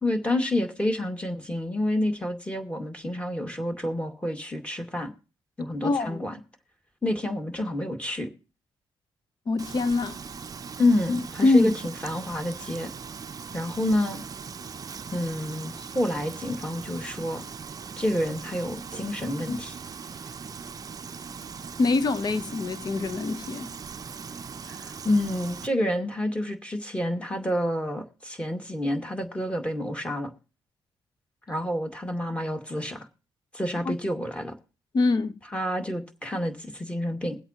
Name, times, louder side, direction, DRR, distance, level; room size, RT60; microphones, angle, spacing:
voice 1, 0.0-5.1 5.6-6.3 7.0-8.3 10.8-12.9 13.5-14.2 15.1-17.4 18.0-19.8 24.7-30.3 31.5-33.1 33.5-34.5 35.5-37.4, left 1 dB, 10° left, 2.1 m, -28 dB
voice 2, 5.8-6.3 9.5-10.2 11.4-11.7 21.8-23.7 33.9-34.0 34.9-35.4, left 3 dB, 45° left, 0.8 m, -24 dB
Frying (food), 9.6-25.7, right 6 dB, 40° right, 0.5 m, -40 dB
21.5 x 8.0 x 2.9 m
cardioid pair, 70°, 9 cm